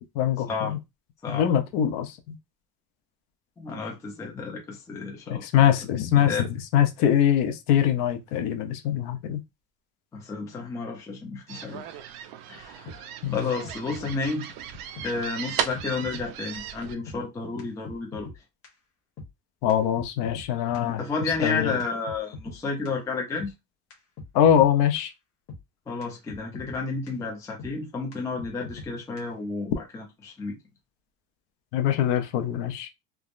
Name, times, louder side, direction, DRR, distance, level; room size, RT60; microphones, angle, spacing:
voice 1, 0.2-0.8 1.3-2.4 5.3-6.5 6.7-9.4 13.2-13.5 19.6-21.0 21.4-21.7 24.3-25.1 31.7-32.9, left 10 dB, 65° left, 0.7 m, -23 dB
voice 2, 3.6-5.6 6.3-6.5 10.1-11.8 12.5-14.5 15.0-18.3 21.0-23.5 25.9-30.6, left 4 dB, 10° left, 0.4 m, -31 dB
sound 1, 11.5-16.9, right 9 dB, 55° right, 0.5 m, -36 dB
sound 2, 12.9-13.0 13.4-13.5 13.6-14.2 14.4-14.5 15.0-15.1 15.5-15.6 15.7-16.3 16.5-16.6 17.1-17.2 17.6-17.7 17.9-18.4 18.6-18.7 19.2-19.3 19.7-20.5 20.7-20.8 21.3-21.4 21.8-21.9 22.1-22.6 22.9-23.0 23.4-23.5 23.9-24.0 24.2-24.7 25.0-25.1 25.5-25.6 26.0-26.1 26.3-26.8 27.1-27.2 27.6-27.7 28.1-28.2 28.4-28.9 29.2-29.3, left 3 dB, 30° left, 1.0 m, -41 dB
3.4 x 2.0 x 2.4 m
cardioid pair, 155°, 44 cm